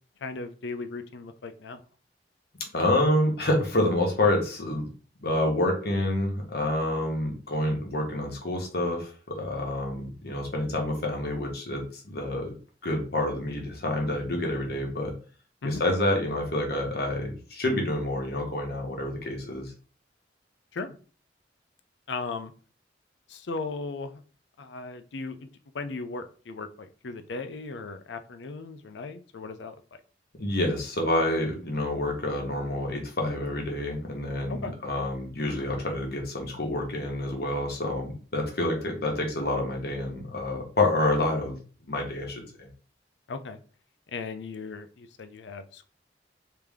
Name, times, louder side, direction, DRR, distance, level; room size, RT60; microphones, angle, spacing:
voice 1, 0.2-1.8 15.6-15.8 20.7-20.9 22.1-22.5 23.3-24.2 24.6-25.5 25.7-29.8 34.5-34.8 43.3-43.6 44.1-45.9, left 3 dB, 85° left, 9 dB, 0.5 m, -37 dB
voice 2, 2.6-4.9 5.2-12.5 12.8-15.1 15.6-19.6 30.4-42.7, left 1 dB, 60° left, 1 dB, 1.2 m, -28 dB
3.4 x 2.9 x 3.5 m, 0.39 s
head